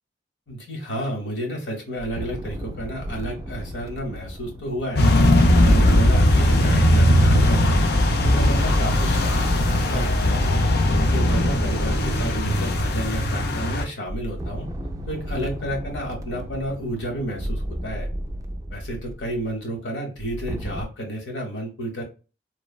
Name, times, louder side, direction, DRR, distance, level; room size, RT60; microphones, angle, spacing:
voice 1, 0.5-5.1 5.6-10.5 11.0-14.7 15.1-18.1 18.7-22.0, equal, 90° left, 0 dB, 1.1 m, -31 dB
sound 1, 2.0-7.2 8.0-13.4 14.1-19.5 20.2-20.8, equal, 20° right, 0.3 m, -34 dB
sound 2, 5.0-13.8, left 1 dB, 60° left, 0.5 m, -19 dB
3.1 x 2.1 x 2.3 m, 0.33 s
head